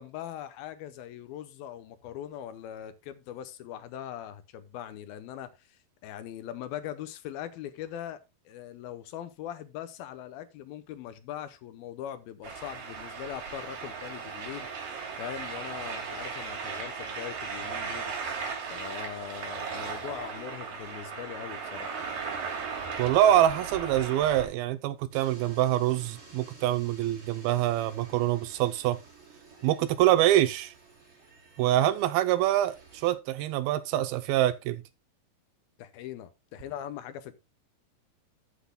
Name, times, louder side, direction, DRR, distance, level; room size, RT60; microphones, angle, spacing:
voice 1, 0.0-8.2 8.5-14.7 15.2-18.1 18.7-21.9 35.8-37.4, left 11 dB, 80° left, 2.5 m, -41 dB
sound 1, 12.4-24.5, right 5 dB, 60° right, 4.2 m, -37 dB
voice 2, 23.0-29.0 29.6-30.7 31.6-34.8, right 13 dB, 80° right, 2.4 m, -25 dB
sound 2, 25.1-33.1, right 3 dB, 35° right, 4.6 m, -53 dB
13.5 x 8.3 x 2.2 m
omnidirectional pair, 4.5 m